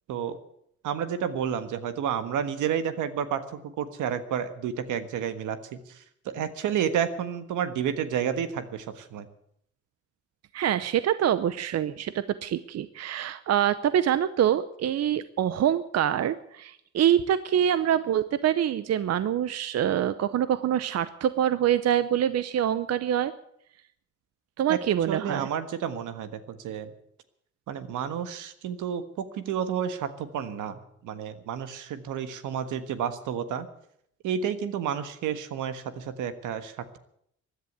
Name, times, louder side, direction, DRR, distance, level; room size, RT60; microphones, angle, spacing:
voice 1, 0.8-9.3 24.7-24.8 25.1-26.9 27.7-33.7 34.2-37.0, right 8 dB, 85° right, 11 dB, 1.5 m, -31 dB
voice 2, 10.5-12.1 12.4-23.3 24.6-25.5, right 10 dB, 55° right, 14 dB, 0.7 m, -25 dB
15.5 x 10.5 x 8.2 m, 0.72 s
cardioid pair, 90°, 30 cm